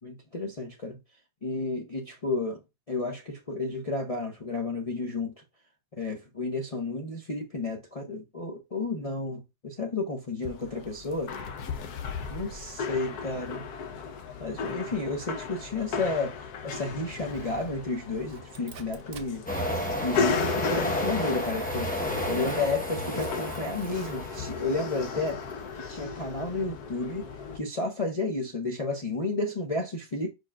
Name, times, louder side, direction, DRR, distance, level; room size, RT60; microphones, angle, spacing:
voice 1, 0.0-1.0 1.4-2.6 2.9-5.3 6.0-11.3 12.3-13.6 14.4-16.3 16.6-19.5 20.0-21.9 22.3-25.4 25.9-27.2 27.5-30.3, left 3 dB, 55° left, 0.4 m, -32 dB
sound 1, 10.4-27.6, left 5 dB, 70° left, 1.2 m, -36 dB
Zipper (clothing), 17.3-17.8 18.1-19.3 19.9-20.7 21.4-21.8 22.1-22.5 23.2-24.4, right 6 dB, 60° right, 1.0 m, -46 dB
sound 2, 19.5-25.2, left 1 dB, 10° left, 0.6 m, -32 dB
4.9 x 4.4 x 2.3 m
omnidirectional pair, 1.8 m